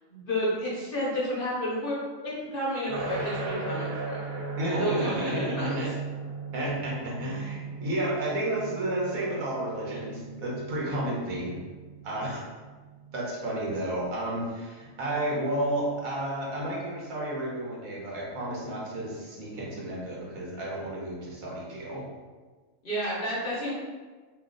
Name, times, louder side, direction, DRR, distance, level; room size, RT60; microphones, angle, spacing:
voice 1, 0.1-1.9 2.2-4.4 4.8-5.8 22.8-23.7, equal, 45° left, -6 dB, 0.9 m, -31 dB
sound 1, 2.9-13.8, right 4 dB, 60° right, 0.5 m, -38 dB
voice 2, 4.6-5.9 6.5-11.6 12.0-12.4 13.1-22.0, right 1 dB, 85° right, -4 dB, 1.4 m, -31 dB
3.1 x 2.4 x 3.6 m, 1.4 s
omnidirectional pair, 1.4 m